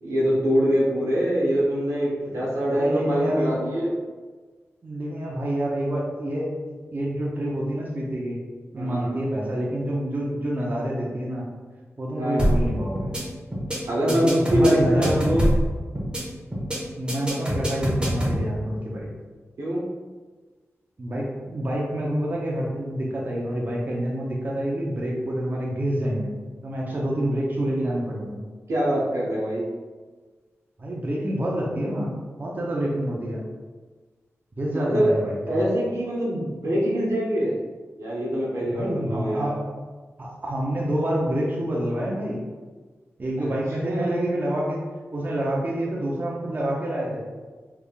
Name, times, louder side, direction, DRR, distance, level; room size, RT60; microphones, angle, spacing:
voice 1, 0.0-3.9 8.7-9.2 12.1-12.5 13.9-15.5 19.6-19.8 28.7-29.7 34.7-35.1 35.4-37.6 38.0-39.6 43.4-43.5 43.8-44.3, equal, 90° right, -5 dB, 0.9 m, -24 dB
voice 2, 2.3-3.6 4.8-8.4 8.7-11.5 12.0-13.1 14.1-15.2 17.0-19.1 21.0-26.3 26.6-28.4 30.8-33.5 34.6-35.6 38.6-39.6 40.2-42.5 43.2-47.3, right 1 dB, 35° right, -3 dB, 0.6 m, -27 dB
sound 1, 12.4-12.7 13.0-13.2 13.5-13.8 14.1-15.7 16.0-16.2 16.5-16.8 17.1-18.4, equal, 20° right, 1.1 m, -24 dB
3.6 x 3.3 x 2.3 m, 1.4 s
wide cardioid pair, 85°, 5 cm